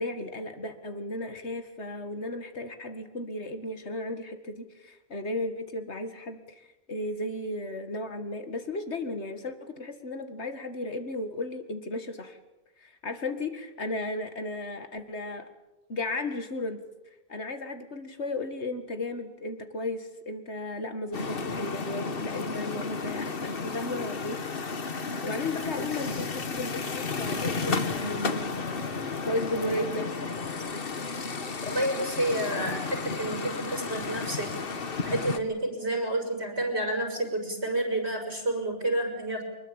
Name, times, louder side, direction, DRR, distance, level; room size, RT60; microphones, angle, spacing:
voice 1, 0.0-12.4 12.8-15.5 15.9-16.8 17.3-24.5 25.2-30.1, left 2 dB, 90° left, 8 dB, 2.3 m, -35 dB
sound 1, 21.1-35.4, left 4 dB, 60° left, 1.6 m, -33 dB
voice 2, 31.6-34.6 35.0-39.4, right 1 dB, 80° right, 4 dB, 6.3 m, -30 dB
24.0 x 21.0 x 8.9 m, 0.99 s
omnidirectional pair, 1.1 m